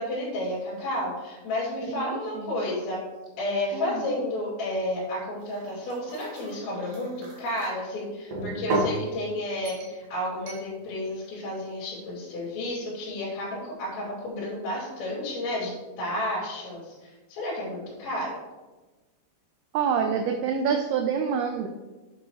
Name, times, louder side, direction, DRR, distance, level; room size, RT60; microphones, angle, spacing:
voice 1, 0.0-3.0 3.4-18.3, left 1 dB, 75° left, -8 dB, 4.8 m, -31 dB
voice 2, 1.9-2.6 3.7-4.1 19.7-21.7, right 6 dB, 85° right, 5 dB, 2.2 m, -27 dB
sound 1, 5.4-7.7 8.3-9.0 9.7-10.0 10.5-10.7, right 2 dB, 55° right, 3.0 m, -33 dB
9.1 x 8.0 x 3.2 m, 1.2 s
omnidirectional pair, 5.2 m